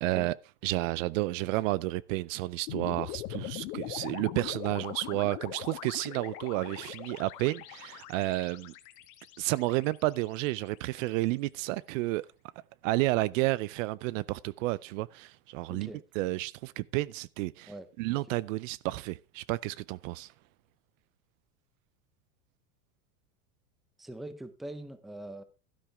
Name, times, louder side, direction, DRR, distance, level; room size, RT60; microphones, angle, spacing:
voice 1, 0.0-0.3 0.6-8.7 9.4-12.3 12.8-17.7 18.0-20.3, right 19 dB, 60° right, 0.6 m, -31 dB
sound 1, 2.7-11.0, left 14 dB, 65° left, 1.7 m, -42 dB
voice 2, 15.7-16.0 17.7-17.9 18.3-18.4 24.0-25.4, right 1 dB, ahead, 0.6 m, -43 dB
12.5 x 11.5 x 3.5 m
supercardioid pair, 150°, 45 cm